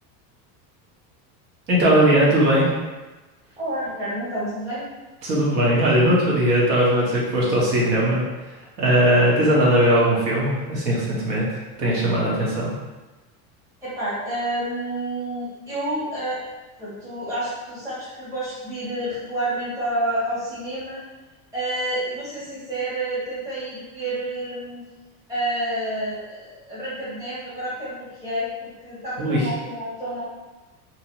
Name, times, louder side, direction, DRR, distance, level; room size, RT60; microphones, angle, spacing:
voice 1, 1.7-2.7 5.2-8.2 8.8-11.4 11.8-12.7 29.2-29.5, right 1 dB, 90° right, -5 dB, 1.2 m, -19 dB
voice 2, 3.6-4.9 13.8-16.4 16.8-21.0 21.5-24.8 25.3-30.2, right 1 dB, 10° right, -11 dB, 0.6 m, -29 dB
2.8 x 2.2 x 2.8 m, 1.1 s
cardioid pair, 170°, 45 cm